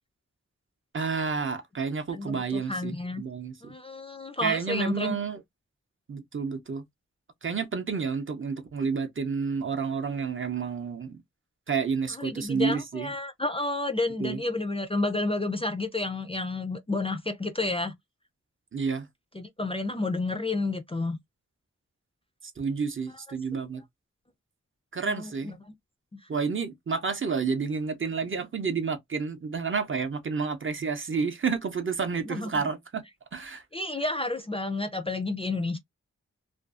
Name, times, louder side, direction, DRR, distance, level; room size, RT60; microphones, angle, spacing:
voice 1, 0.9-3.7 4.4-5.4 6.1-6.8 7.4-11.2 11.7-13.1 14.2-14.4 18.7-19.1 22.6-23.8 24.9-25.6 26.3-33.0 33.3-33.6, right 5 dB, 45° right, 0.5 m, -30 dB
voice 2, 2.1-3.2 3.6-5.1 12.1-17.9 19.3-21.2 25.1-25.5 32.3-32.5 33.7-35.8, left 2 dB, 20° left, 0.4 m, -30 dB
2.5 x 2.3 x 2.3 m
wide cardioid pair, 75°, 30 cm